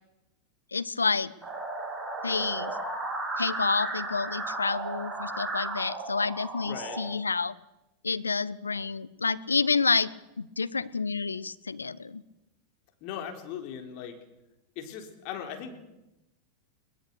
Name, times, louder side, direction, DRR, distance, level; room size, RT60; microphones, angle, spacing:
voice 1, 0.7-1.3 2.2-2.8 3.4-7.5 8.0-10.1 10.4-12.2, left 4 dB, 75° left, 16 dB, 0.9 m, -29 dB
sound 1, 1.4-7.0, right 2 dB, 10° right, 7.5 m, -35 dB
voice 2, 6.6-7.0 13.0-14.2 14.8-15.8, left 8 dB, 45° left, 5 dB, 3.9 m, -38 dB
22.0 x 20.0 x 6.9 m, 0.94 s
figure-of-eight pair, 90°, 0 cm